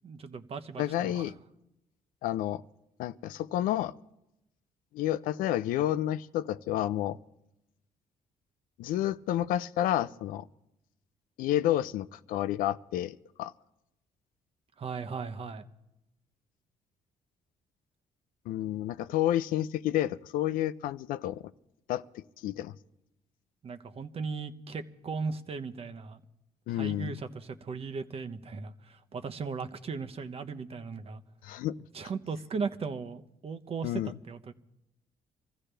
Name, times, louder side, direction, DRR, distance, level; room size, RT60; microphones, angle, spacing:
voice 1, 0.0-1.3 14.8-15.6 23.6-26.2 26.7-31.2 31.9-34.5, right 5 dB, 45° right, 8 dB, 1.0 m, -37 dB
voice 2, 0.8-1.3 2.2-2.6 3.0-3.9 4.9-7.2 8.8-10.5 11.4-13.5 18.5-21.4 21.9-22.7 26.7-27.2 31.4-31.8 33.8-34.1, left 12 dB, 85° left, 15 dB, 0.5 m, -30 dB
25.0 x 15.0 x 3.4 m, 0.89 s
cardioid pair, 90°, 14 cm